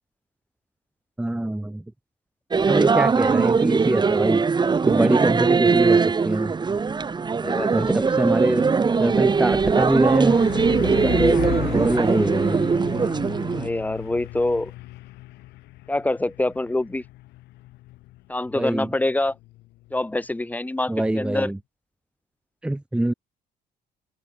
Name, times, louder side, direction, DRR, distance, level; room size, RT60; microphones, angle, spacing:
voice 1, 1.2-1.8 2.7-4.5 4.9-6.5 7.7-8.7 9.0-10.4 10.8-12.7 18.5-18.9 20.9-21.6 22.6-23.1, right 1 dB, 5° right, 0.9 m, -24 dB
sound 1, 2.5-13.7, right 5 dB, 25° right, 1.9 m, -20 dB
voice 2, 7.4-8.1 13.6-14.7 15.9-17.0 18.3-19.3 19.9-21.5, left 2 dB, 10° left, 2.6 m, -25 dB
Truck, 7.7-20.3, left 18 dB, 85° left, 4.1 m, -36 dB
cardioid pair, 110°, 17 cm